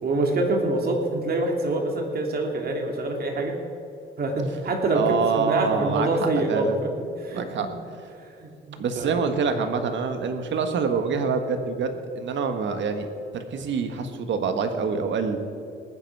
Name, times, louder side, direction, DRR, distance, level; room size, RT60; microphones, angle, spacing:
voice 1, 0.0-3.6 4.2-6.9 7.2-7.4 8.4-9.1, right 2 dB, 50° right, 2 dB, 2.6 m, -25 dB
voice 2, 4.9-6.8 7.3-7.7 8.8-13.1 13.3-15.4, right 5 dB, 70° right, 7 dB, 1.5 m, -26 dB
19.5 x 9.7 x 4.7 m, 2.6 s
cardioid pair, 90°, 20 cm